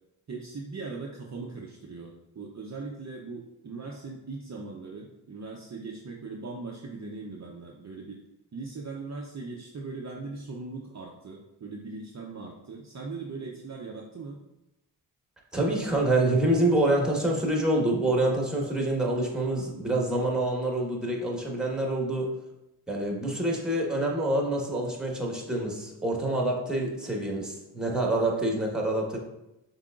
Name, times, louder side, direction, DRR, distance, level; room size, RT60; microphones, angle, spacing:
voice 1, 0.3-8.2 8.5-14.4, right 3 dB, 35° right, -1 dB, 0.7 m, -39 dB
voice 2, 15.5-22.3 22.9-29.2, right 1 dB, ahead, -1 dB, 1.4 m, -26 dB
5.7 x 3.6 x 2.5 m, 0.92 s
supercardioid pair, 45°, 48 cm